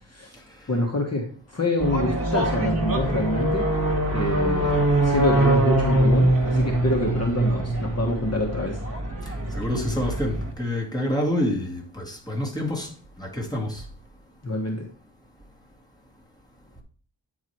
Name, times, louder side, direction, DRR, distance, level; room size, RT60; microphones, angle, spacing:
voice 1, 0.7-3.7 4.1-8.8 14.4-14.9, left 1 dB, 35° left, 1.4 m, -26 dB
sound 1, 1.8-10.5, right 1 dB, 30° right, 1.9 m, -23 dB
voice 2, 9.3-12.9 13.2-13.8, left 1 dB, 10° left, 2.0 m, -28 dB
9.1 x 4.7 x 4.5 m
wide cardioid pair, 120°, 45 cm